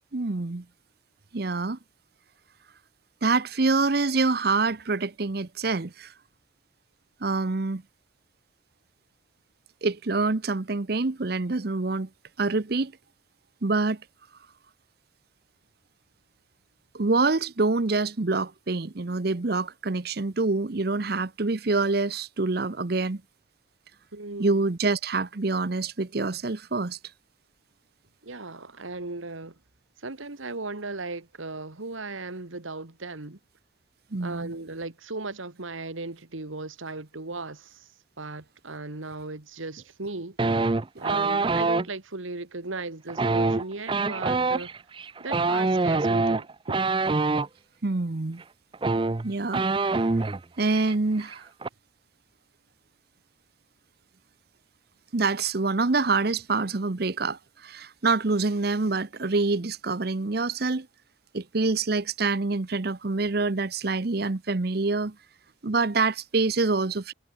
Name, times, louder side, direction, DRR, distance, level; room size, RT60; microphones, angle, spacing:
voice 1, 0.1-0.6 1.3-1.8 3.2-6.1 7.2-7.8 9.8-12.1 12.4-12.9 13.6-14.0 16.9-23.2 24.4-27.0 34.1-34.5 41.0-41.1 47.8-48.4 49.2-50.1 50.6-51.5 55.1-60.9 61.3-65.1 65.6-67.1, right 3 dB, 50° right, 0.8 m, -26 dB
voice 2, 24.1-24.6 28.2-29.6 30.0-33.4 34.2-37.9 38.2-40.4 40.7-40.8 41.0-44.7 45.2-46.5, right 3 dB, 85° right, 2.0 m, -37 dB
sound 1, 40.4-41.9 43.1-47.5 48.4-48.5 48.7-50.4 50.7-50.9 51.2-51.7, right 3 dB, 25° right, 0.4 m, -25 dB
head